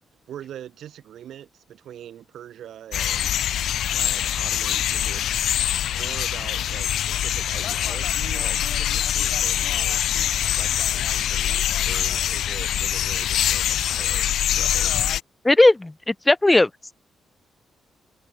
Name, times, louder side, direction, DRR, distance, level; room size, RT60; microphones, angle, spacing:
voice 1, 0.3-3.3 3.9-5.3 5.9-10.0 10.5-14.9, right 10 dB, 80° right, 1.4 m, -42 dB
sound 1, 2.9-15.2, left 11 dB, 80° left, 0.4 m, -24 dB
voice 2, 15.4-16.7, left 2 dB, 20° left, 0.4 m, -17 dB
cardioid pair, 65°, 0 cm